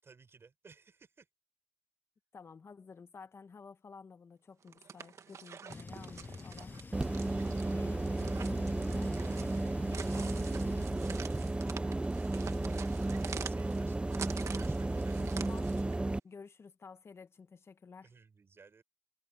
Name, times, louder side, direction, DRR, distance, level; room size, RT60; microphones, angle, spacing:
voice 1, 0.0-1.3 12.6-15.2 18.0-18.8, right 5 dB, 50° right, 6.2 m, -58 dB
voice 2, 2.3-6.8 7.4-11.9 15.2-15.7 16.2-18.1, left 5 dB, 50° left, 1.8 m, -53 dB
sound 1, 4.6-16.0, right 7 dB, 65° right, 2.0 m, -47 dB
sound 2, 5.7-10.9, left 4 dB, 35° left, 0.9 m, -47 dB
sound 3, 6.9-16.2, right 2 dB, 20° right, 1.0 m, -33 dB
supercardioid pair, 50°, 5 cm